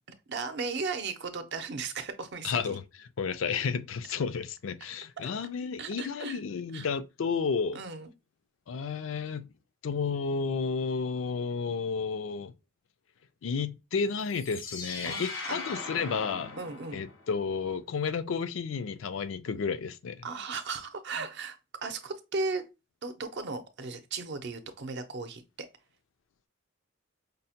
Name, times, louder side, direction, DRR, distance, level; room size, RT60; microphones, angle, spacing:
voice 1, 0.3-2.8 5.8-6.4 6.7-6.9 7.7-8.1 15.1-15.6 16.6-17.0 20.2-21.6 21.8-22.7 23.0-25.7, right 4 dB, 60° right, 0.6 m, -36 dB
voice 2, 2.4-7.8 8.7-9.5 9.8-12.5 13.4-16.6 16.9-20.2, left 5 dB, 75° left, 0.4 m, -32 dB
sound 1, 14.2-17.3, left 4 dB, 90° left, 1.3 m, -39 dB
5.2 x 2.1 x 2.8 m
head